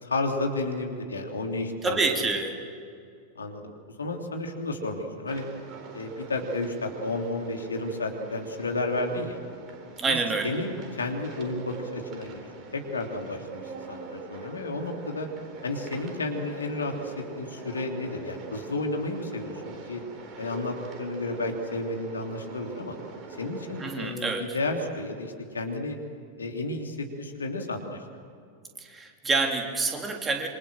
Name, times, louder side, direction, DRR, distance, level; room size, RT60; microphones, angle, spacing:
voice 1, 0.0-2.0 3.3-5.4 5.9-9.4 10.1-10.2 10.4-12.4 12.7-13.6 13.9-15.3 15.6-20.0 20.4-23.0 23.4-26.0 26.4-28.0, left 2 dB, 75° left, 3 dB, 3.2 m, -32 dB
voice 2, 1.8-2.6 10.0-10.6 23.8-24.5 28.8-30.5, right 3 dB, 15° right, 3 dB, 3.3 m, -27 dB
sound 1, 5.3-24.0, right 4 dB, 35° right, 4.3 m, -43 dB
27.0 x 25.5 x 7.7 m, 2.3 s
figure-of-eight pair, 90°, 0 cm